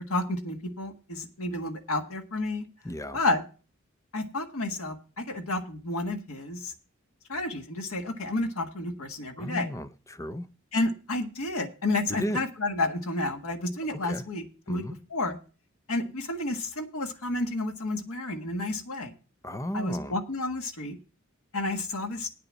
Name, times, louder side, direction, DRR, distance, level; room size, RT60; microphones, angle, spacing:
voice 1, 0.1-2.6 3.1-3.4 4.1-6.7 7.3-9.7 10.7-14.8 15.1-15.4 15.9-19.1 19.7-21.0 21.5-22.3, left 2 dB, 80° left, 1.5 m, -31 dB
voice 2, 2.8-3.2 9.4-10.5 12.1-12.4 13.9-14.3 14.7-15.0 19.4-20.1, equal, 15° left, 0.6 m, -34 dB
9.1 x 6.8 x 7.3 m
head